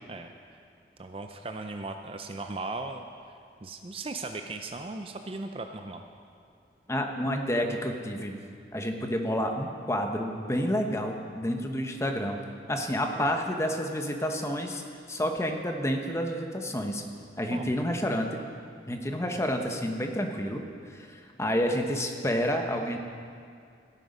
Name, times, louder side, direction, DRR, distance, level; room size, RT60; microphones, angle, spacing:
voice 1, 1.0-3.1 3.6-6.0 13.2-13.3 17.5-17.7, right 3 dB, 30° right, 6 dB, 0.5 m, -37 dB
voice 2, 6.9-8.4 8.7-12.4 12.7-14.8 15.1-17.0 17.4-18.4 18.9-23.0, equal, 15° left, 3 dB, 1.0 m, -29 dB
15.5 x 9.2 x 5.4 m, 2.3 s
head